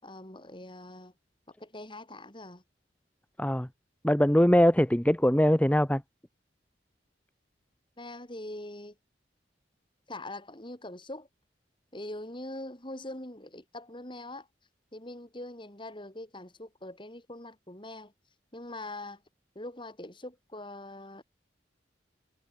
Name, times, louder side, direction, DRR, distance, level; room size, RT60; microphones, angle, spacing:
voice 1, 0.0-1.1 1.6-2.6 8.0-8.9 10.1-11.3 11.9-14.5 14.9-18.1 18.5-19.2 19.5-21.2, left 1 dB, 25° left, 6.2 m, -42 dB
voice 2, 3.4-3.7 4.0-6.0, equal, 5° left, 1.0 m, -22 dB
head